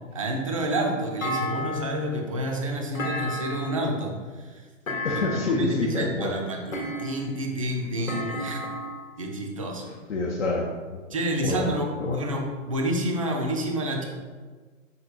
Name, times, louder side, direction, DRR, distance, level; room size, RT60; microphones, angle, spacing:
voice 1, 0.1-4.6 5.5-8.6 9.2-9.9 11.1-14.0, right 1 dB, 25° right, 1 dB, 0.4 m, -29 dB
Thump thud, 1.2-2.1 2.9-3.9 4.9-5.6 6.7-7.4 8.1-9.1, left 1 dB, 85° left, 0.9 m, -32 dB
voice 2, 5.0-6.4 10.1-10.7 10.9-11.0 11.4-12.2, left 2 dB, 60° left, -1 dB, 0.6 m, -27 dB
5.8 x 3.7 x 2.2 m, 1.4 s
figure-of-eight pair, 125°, 40 cm